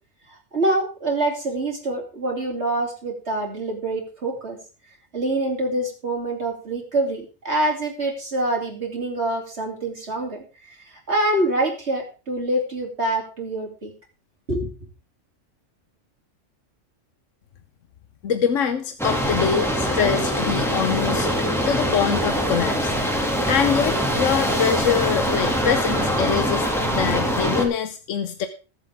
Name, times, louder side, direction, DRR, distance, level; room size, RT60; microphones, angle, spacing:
voice 1, 0.5-4.6 5.1-13.9 14.5-14.7, right 1 dB, 55° right, 0 dB, 3.4 m, -25 dB
voice 2, 18.2-21.3 21.7-23.0 23.5-28.5, left 7 dB, 75° left, 9 dB, 1.2 m, -24 dB
sound 1, 19.0-27.6, equal, ahead, 2.2 m, -23 dB
20.5 x 7.4 x 3.5 m, 0.34 s
omnidirectional pair, 1.3 m